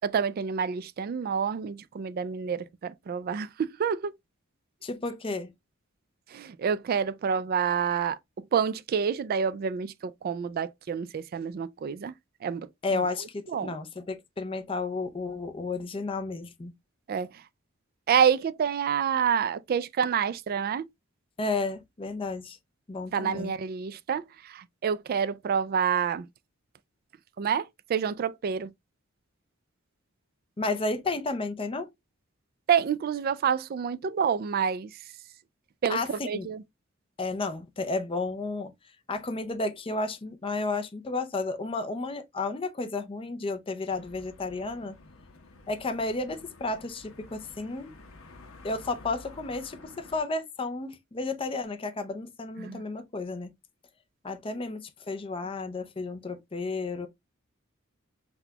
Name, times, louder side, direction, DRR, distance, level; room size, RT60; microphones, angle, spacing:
voice 1, 0.0-4.1 6.3-8.2 8.5-12.1 12.4-12.7 12.9-13.0 13.5-13.7 17.1-17.3 18.1-20.9 23.1-26.3 27.4-28.7 32.7-34.9 35.8-36.6 52.6-52.8, right 7 dB, 45° right, 0.3 m, -28 dB
voice 2, 4.8-5.5 12.8-16.7 21.4-22.6 22.9-23.5 30.6-31.9 35.9-36.5 37.2-38.7 39.1-44.9 45.7-47.9 48.6-53.5 54.2-57.1, left 3 dB, 25° left, 0.5 m, -32 dB
sound 1, 43.9-50.2, left 3 dB, 80° left, 0.8 m, -51 dB
5.9 x 2.3 x 2.7 m
head